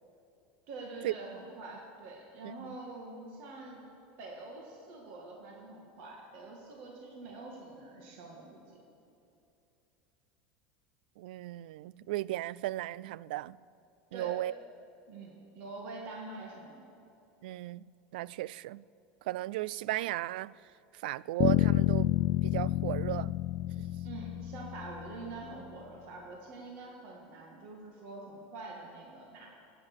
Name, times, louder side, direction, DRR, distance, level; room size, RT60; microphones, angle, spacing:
voice 1, 0.7-3.8 4.2-8.8 14.1-14.4 15.1-16.9 24.0-29.5, right 3 dB, 45° right, 2.1 m, -45 dB
voice 2, 2.4-2.8 11.2-13.6 14.1-14.5 17.4-18.8 19.2-20.6 20.9-22.1 22.4-23.3, right 16 dB, 90° right, 0.3 m, -36 dB
sound 1, 21.4-25.4, left 15 dB, 35° left, 0.4 m, -29 dB
25.5 x 9.0 x 6.3 m
supercardioid pair, 180°, 5 cm